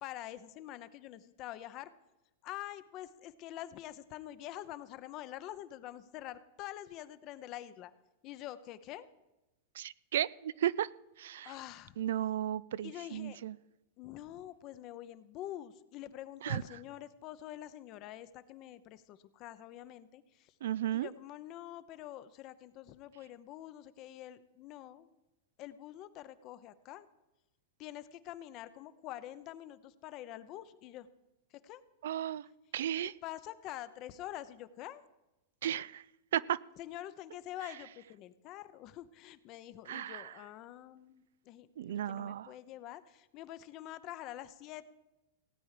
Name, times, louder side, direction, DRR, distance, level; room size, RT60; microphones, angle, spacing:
voice 1, 0.0-1.9 2.4-7.9 8.2-9.1 11.4-12.0 12.8-13.4 14.0-20.5 20.9-25.1 25.6-27.1 27.8-31.1 31.6-31.8 33.0-35.0 36.8-41.7 42.1-44.9, left 13 dB, 40° left, 14 dB, 0.8 m, -46 dB
voice 2, 9.7-10.9 11.2-11.5 12.0-13.6 16.4-16.6 20.6-21.1 32.0-32.5 32.7-33.1 35.6-36.0 36.3-36.6 39.9-40.3 41.8-42.5, right 11 dB, 80° right, 20 dB, 0.3 m, -34 dB
17.0 x 8.7 x 4.9 m, 1.0 s
hypercardioid pair, 130°, 0 cm